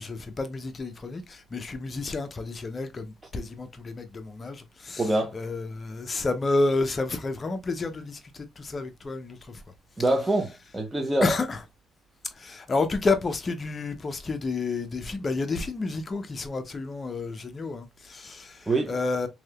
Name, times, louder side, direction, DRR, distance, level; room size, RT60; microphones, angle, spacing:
voice 1, 0.0-9.6 11.2-11.6 12.3-19.3, left 3 dB, 35° left, 0.6 m, -30 dB
voice 2, 5.0-5.3 10.0-11.3 18.7-18.9, right 2 dB, 15° right, 0.6 m, -25 dB
3.3 x 2.7 x 2.3 m
cardioid pair, 90°, 0 cm